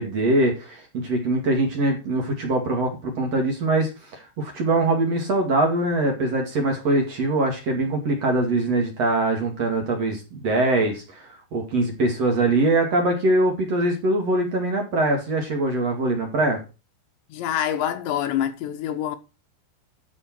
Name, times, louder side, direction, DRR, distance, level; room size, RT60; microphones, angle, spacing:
voice 1, 0.0-16.6, right 2 dB, 45° right, 2.9 m, -23 dB
voice 2, 17.3-19.2, left 10 dB, 85° left, 3.5 m, -26 dB
12.5 x 5.7 x 4.5 m
omnidirectional pair, 5.0 m